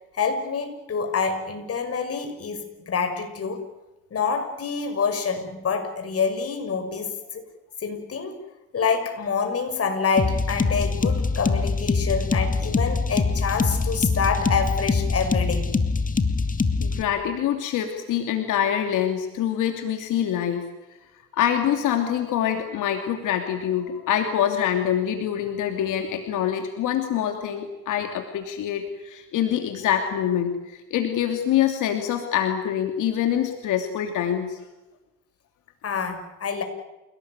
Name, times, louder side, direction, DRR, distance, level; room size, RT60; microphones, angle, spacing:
voice 1, 0.2-3.6 4.1-7.4 7.8-8.4 8.7-15.7 35.8-36.6, left 5 dB, 50° left, 6 dB, 6.4 m, -27 dB
sound 1, 10.2-17.0, left 4 dB, 25° left, 2.4 m, -23 dB
voice 2, 16.8-20.6 21.3-34.6, left 10 dB, 90° left, 5 dB, 2.9 m, -25 dB
29.0 x 18.5 x 9.7 m, 1.0 s
cardioid pair, 90°, 30 cm